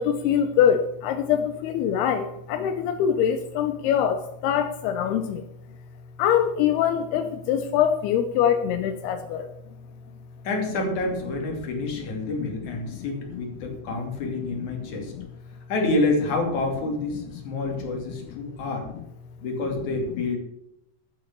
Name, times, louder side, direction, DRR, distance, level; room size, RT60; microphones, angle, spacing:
voice 1, 0.0-5.4 6.2-9.5 12.9-13.0 14.8-14.9, left 9 dB, 85° left, 8 dB, 2.8 m, -23 dB
voice 2, 10.4-15.1 15.7-18.9 19.4-20.4, left 2 dB, 50° left, 1 dB, 3.9 m, -28 dB
12.0 x 8.0 x 6.8 m, 0.83 s
omnidirectional pair, 4.5 m